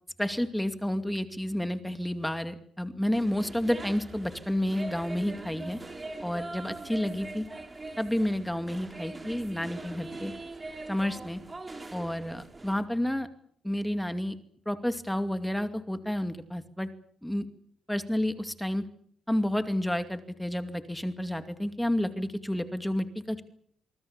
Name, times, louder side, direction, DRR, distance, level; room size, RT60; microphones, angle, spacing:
voice 1, 0.2-5.8 6.2-7.4 8.0-10.3 10.9-11.4 11.9-13.3 13.6-14.4 14.7-16.9 17.2-17.5 17.9-18.8 19.3-23.4, left 1 dB, 5° left, 9 dB, 2.4 m, -30 dB
sound 1, 3.1-12.8, right 2 dB, 20° right, 4.1 m, -42 dB
25.5 x 22.5 x 7.2 m, 0.64 s
cardioid pair, 90°, 0 cm